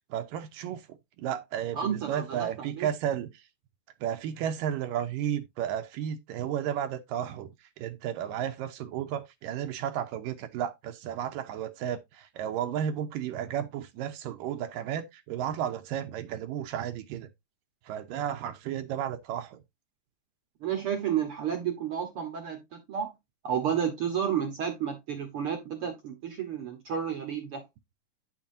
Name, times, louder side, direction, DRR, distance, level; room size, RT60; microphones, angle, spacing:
voice 1, 0.1-0.8 1.2-3.3 4.0-7.5 7.8-17.3 17.9-19.6, right 9 dB, 80° right, 2.3 m, -33 dB
voice 2, 1.7-2.5 2.7-2.9 20.6-23.1 23.4-27.6, right 8 dB, 60° right, 1.4 m, -31 dB
9.2 x 7.3 x 2.6 m
omnidirectional pair, 4.1 m